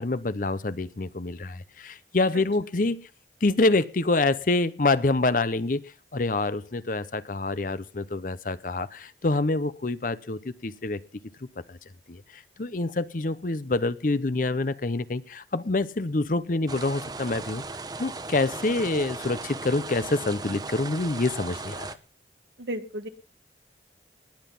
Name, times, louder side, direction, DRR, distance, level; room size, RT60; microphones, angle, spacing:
voice 1, 0.0-3.0 3.4-5.8 6.1-11.0 11.7-11.8 12.1-17.6 18.0-21.9, left 2 dB, 50° left, 15 dB, 0.7 m, -26 dB
sound 1, 16.7-21.9, right 3 dB, 20° right, 0.8 m, -37 dB
voice 2, 22.6-23.1, right 1 dB, 75° right, 9 dB, 1.5 m, -33 dB
19.5 x 8.1 x 5.4 m, 0.38 s
head